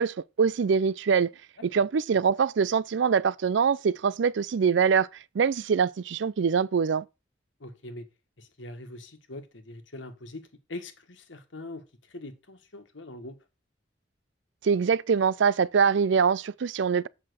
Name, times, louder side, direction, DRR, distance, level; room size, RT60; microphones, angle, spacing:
voice 1, 0.0-1.3 1.6-5.1 5.3-7.0 14.6-17.1, right 6 dB, 70° right, 0.4 m, -24 dB
voice 2, 7.6-8.1 8.4-13.4, left 2 dB, 80° left, 1.6 m, -43 dB
7.6 x 5.9 x 6.3 m
head